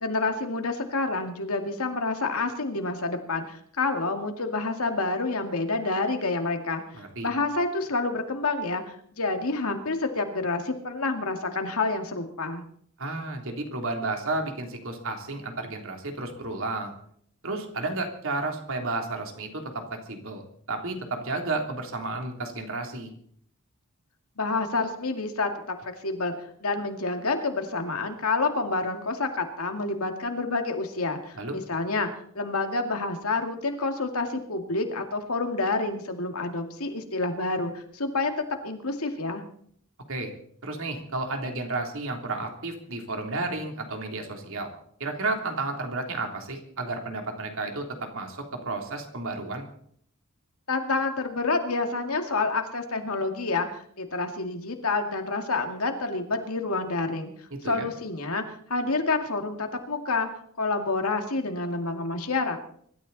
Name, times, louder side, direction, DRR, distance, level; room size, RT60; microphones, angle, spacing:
voice 1, 0.0-12.6 24.4-26.3 26.6-38.3 38.6-39.4 50.7-57.3 57.6-60.3 60.6-62.6, left 3 dB, 80° left, 5 dB, 2.3 m, -28 dB
voice 2, 6.9-7.3 13.0-16.9 17.4-20.4 20.7-23.1 31.4-31.6 40.1-40.3 40.6-44.7 45.0-49.7 57.6-57.9, right 2 dB, 65° right, 3 dB, 3.4 m, -32 dB
24.5 x 13.0 x 4.2 m, 0.64 s
head